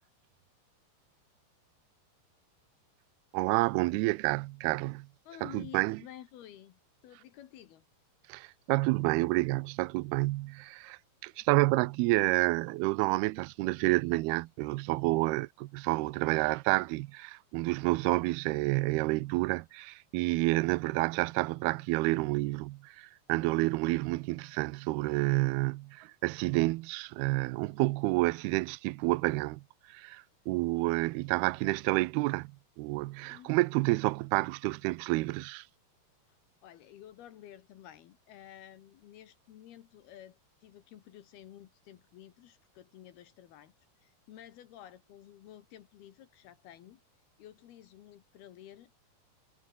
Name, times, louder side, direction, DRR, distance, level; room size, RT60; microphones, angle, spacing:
voice 1, 3.3-5.1 5.4-6.0 8.3-29.6 29.9-32.5 32.8-35.6, right 21 dB, 80° right, 2.6 m, -29 dB
voice 2, 5.2-7.8 33.2-33.5 36.3-36.4 36.6-43.7 44.0-47.0 47.4-48.9, left 11 dB, 75° left, 3.4 m, -52 dB
omnidirectional pair, 4.7 m